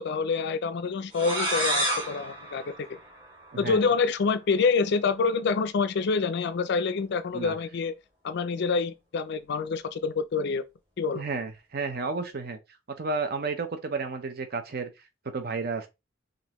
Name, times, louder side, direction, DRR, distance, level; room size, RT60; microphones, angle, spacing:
voice 1, 0.0-3.0 3.6-7.9 8.2-10.6 11.0-11.2, left 4 dB, 60° left, 0.4 m, -27 dB
sound 1, 1.1-3.7, right 1 dB, 30° right, 2.3 m, -30 dB
voice 2, 3.5-3.9 7.3-7.5 11.1-12.6 13.0-14.9 15.3-15.9, right 4 dB, 55° right, 0.8 m, -32 dB
5.2 x 2.6 x 3.0 m
head